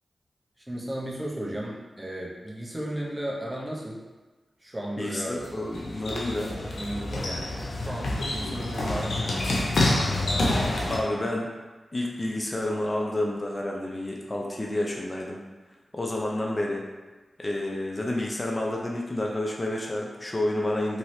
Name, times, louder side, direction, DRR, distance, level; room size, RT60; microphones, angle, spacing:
voice 1, 0.6-4.0 4.6-5.3 6.1-6.4 6.8-9.4, right 1 dB, 25° right, -3 dB, 0.7 m, -35 dB
voice 2, 5.0-6.6 10.9-11.5 11.9-15.4 15.9-16.9 17.4-21.0, left 1 dB, 30° left, -1 dB, 0.4 m, -29 dB
sound 1, 5.4-11.0, left 2 dB, 85° left, 0.5 m, -27 dB
2.7 x 2.7 x 3.1 m, 1.3 s
cardioid pair, 60°, 0 cm